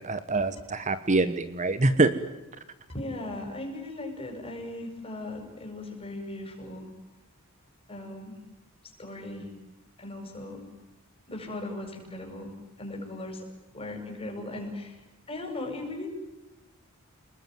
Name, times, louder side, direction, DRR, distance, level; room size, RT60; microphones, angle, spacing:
voice 1, 0.0-2.1, right 2 dB, 35° right, 12 dB, 1.2 m, -25 dB
voice 2, 2.9-6.9 7.9-8.4 9.0-9.5 10.0-10.6 11.3-12.5 12.8-13.5 13.7-16.1, left 2 dB, 25° left, 2 dB, 7.6 m, -38 dB
29.5 x 21.0 x 9.6 m, 1.0 s
head